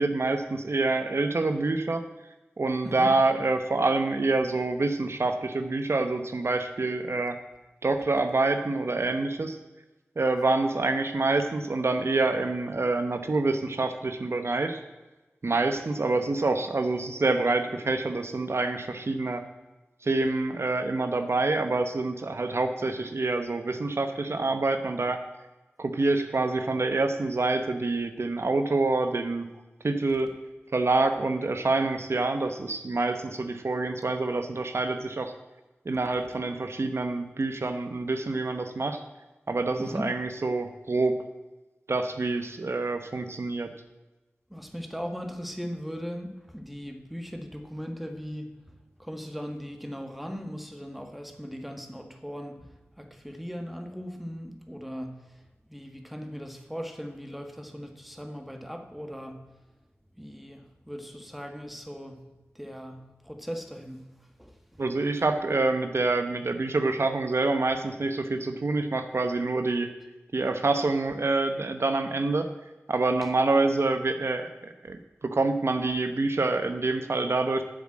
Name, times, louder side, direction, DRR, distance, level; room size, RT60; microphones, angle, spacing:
voice 1, 0.0-2.0 2.6-7.4 7.8-9.6 10.2-14.8 15.4-19.4 20.0-25.2 25.8-29.5 29.8-30.4 30.7-35.3 35.8-39.0 39.5-41.2 41.9-43.7 64.8-69.9 70.3-72.5 72.9-77.6, right 3 dB, 65° right, 7 dB, 0.9 m, -26 dB
voice 2, 39.8-40.1 44.5-48.6 49.0-55.3 55.7-59.5 60.2-62.3 62.5-64.1 64.4-64.6 73.2-73.3, equal, ahead, 5 dB, 1.7 m, -38 dB
10.0 x 7.4 x 7.5 m, 1.1 s
cardioid pair, 45°, 5 cm